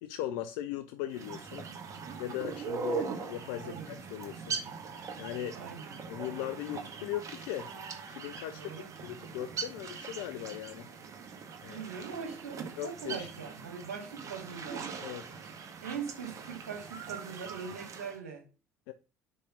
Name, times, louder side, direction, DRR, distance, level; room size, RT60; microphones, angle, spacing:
voice 1, 0.0-1.6 2.2-4.6 5.2-5.6 6.1-7.7 8.1-8.7 9.0-10.9 11.6-11.9 12.8-13.3 15.0-15.3 18.9-19.0, left 12 dB, 65° left, 0.5 m, -38 dB
sound 1, 1.1-18.2, right 5 dB, 40° right, 1.7 m, -41 dB
voice 2, 5.6-6.0 8.5-8.9 11.7-14.9 15.8-18.4, right 6 dB, 80° right, 2.1 m, -41 dB
5.4 x 5.0 x 6.0 m
figure-of-eight pair, 55°, 8 cm